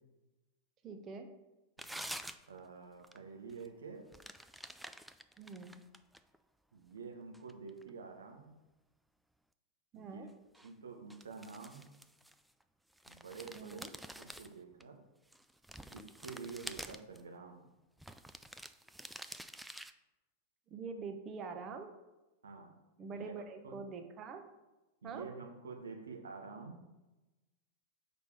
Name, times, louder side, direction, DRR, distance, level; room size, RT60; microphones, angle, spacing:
voice 1, 0.8-1.3 5.4-5.8 9.9-10.3 13.5-13.9 20.7-21.9 23.0-24.4 25.0-25.3, right 4 dB, 30° right, 6 dB, 0.9 m, -44 dB
sound 1, 1.8-2.7 3.0-3.2 3.5-3.7 4.1-6.4 6.9-7.9 10.5-10.7 11.1-12.6 12.9-14.8 15.3-17.2 18.0-19.9, right 1 dB, ahead, 0.4 m, -48 dB
voice 2, 2.5-4.1 6.7-8.5 9.9-10.3 10.6-11.8 13.1-13.8 14.2-15.0 15.9-17.7 22.4-22.7 23.1-23.3 23.6-23.8 25.0-26.8, right 4 dB, 70° right, 3 dB, 1.1 m, -48 dB
6.8 x 5.1 x 4.7 m, 1.1 s
figure-of-eight pair, 90°, 0 cm